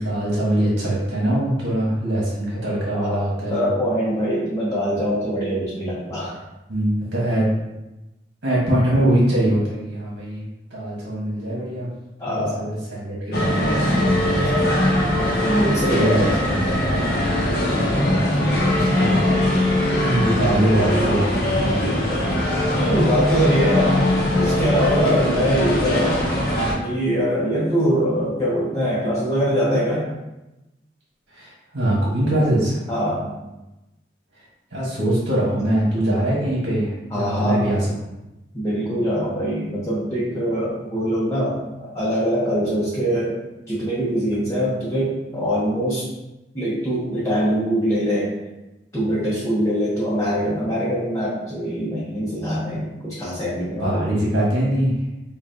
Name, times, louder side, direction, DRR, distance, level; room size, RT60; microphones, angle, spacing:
voice 1, 0.0-3.7 6.7-7.5 8.4-10.4 10.7-11.9 12.3-14.9 15.3-15.6 15.9-17.0 17.7-19.3 20.0-22.0 31.3-32.8 34.7-37.9 53.8-54.9, right 1 dB, 70° right, -6 dB, 1.2 m, -23 dB
voice 2, 2.9-6.3 12.2-12.6 15.4-16.3 22.7-24.0 24.3-26.2 26.8-30.1 32.9-33.3 37.1-37.7 38.5-43.4 43.7-46.1 46.5-48.3 48.9-54.1, equal, 15° left, -9 dB, 0.9 m, -23 dB
sound 1, 13.3-26.7, left 1 dB, 60° left, 0.9 m, -21 dB
5.4 x 2.4 x 2.7 m, 0.99 s
head